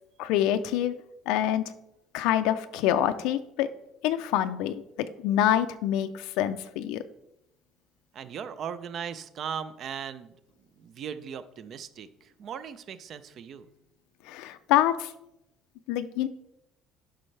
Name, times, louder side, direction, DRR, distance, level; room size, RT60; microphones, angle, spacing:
voice 1, 0.2-0.9 1.3-1.6 2.1-3.7 4.0-7.0 14.3-15.1 15.9-16.3, left 11 dB, 80° left, 9 dB, 0.5 m, -26 dB
voice 2, 8.1-10.3 10.8-13.7, right 7 dB, 40° right, 13 dB, 0.5 m, -38 dB
11.5 x 5.4 x 3.3 m, 0.83 s
cardioid pair, 175°, 0 cm